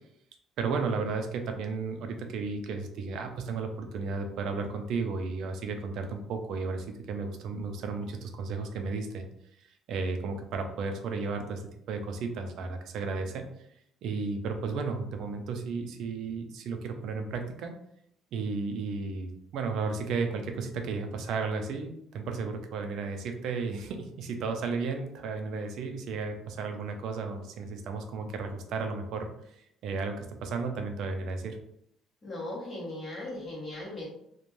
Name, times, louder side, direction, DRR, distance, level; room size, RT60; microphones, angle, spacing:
voice 1, 0.6-9.3 9.6-11.6 11.9-13.4 14.0-17.7 18.3-29.3 29.8-31.6, right 4 dB, 60° right, 5 dB, 0.4 m, -33 dB
voice 2, 32.2-34.1, left 2 dB, 20° left, -5 dB, 1.0 m, -38 dB
2.5 x 2.2 x 3.1 m, 0.73 s
cardioid pair, 165°, 0 cm